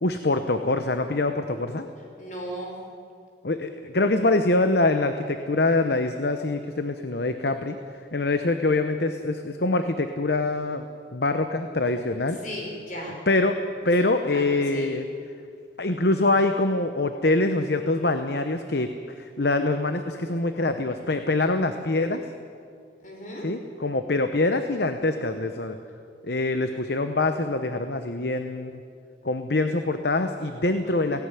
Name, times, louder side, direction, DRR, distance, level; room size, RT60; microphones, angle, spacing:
voice 1, 0.0-1.9 3.4-7.8 8.1-10.8 11.1-12.4 13.3-13.6 13.8-15.1 15.8-22.2 23.4-25.8 26.3-28.8 29.2-31.2, left 2 dB, 55° left, 8 dB, 0.9 m, -24 dB
voice 2, 2.2-2.8 12.3-13.2 13.8-13.9 14.3-15.0 23.0-23.5 30.8-31.2, equal, 40° left, -1 dB, 5.5 m, -37 dB
17.5 x 16.5 x 9.9 m, 2.3 s
head